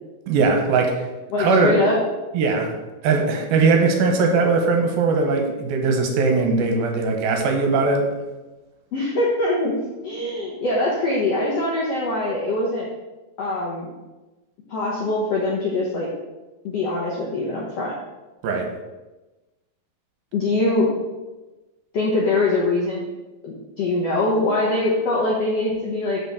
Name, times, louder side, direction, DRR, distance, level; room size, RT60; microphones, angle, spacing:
voice 1, 0.3-1.1 1.4-1.8 2.3-2.8 3.0-8.1 18.4-18.7, right 4 dB, 75° right, 3 dB, 2.8 m, -20 dB
voice 2, 1.3-2.0 8.9-9.7 10.0-12.9 13.4-13.9 14.7-16.1 16.6-17.9 20.3-20.9 21.9-23.0 23.4-26.2, left 2 dB, 70° left, -4 dB, 1.5 m, -23 dB
6.1 x 5.1 x 6.7 m, 1.1 s
omnidirectional pair, 4.4 m